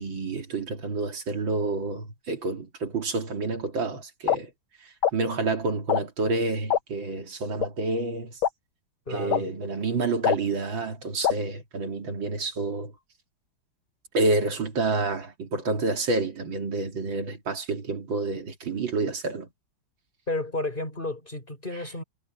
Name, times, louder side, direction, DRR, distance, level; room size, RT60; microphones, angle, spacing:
voice 1, 0.0-4.5 4.8-8.4 9.1-12.9 14.1-19.5 21.7-21.8, right 3 dB, 75° right, 3.2 m, -29 dB
sound 1, 4.3-4.4 5.0-5.1 5.9-6.0 6.7-6.8 7.6-7.7 8.4-8.5 9.3-9.4 10.2-10.4 11.2-11.3, left 9 dB, 85° left, 2.0 m, -22 dB
voice 2, 9.1-9.5 20.3-22.0, left 2 dB, 25° left, 5.6 m, -32 dB
omnidirectional pair, 2.1 m